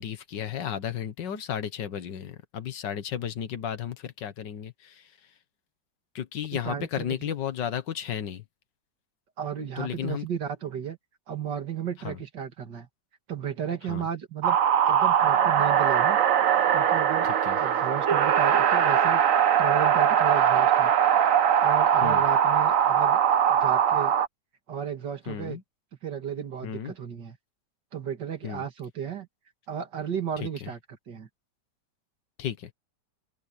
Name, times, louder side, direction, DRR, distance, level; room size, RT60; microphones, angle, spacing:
voice 1, 0.0-5.1 6.2-8.4 9.8-10.3 12.0-12.2 13.9-14.0 17.2-17.6 22.0-22.2 25.3-25.6 26.6-27.0 28.4-28.6 30.4-30.7 32.4-32.7, left 9 dB, 90° left, 1.9 m, -33 dB
voice 2, 6.6-7.2 9.4-11.0 11.3-12.9 13.3-14.6 14.9-16.2 16.7-17.3 17.6-19.2 19.6-20.9 21.6-23.2 23.5-24.2 24.7-25.6 26.0-27.4 27.9-29.3 29.7-30.8 31.1-31.3, right 8 dB, 80° right, 2.7 m, -34 dB
sound 1, 14.4-24.3, right 8 dB, 55° right, 1.2 m, -21 dB
open air
omnidirectional pair, 1.9 m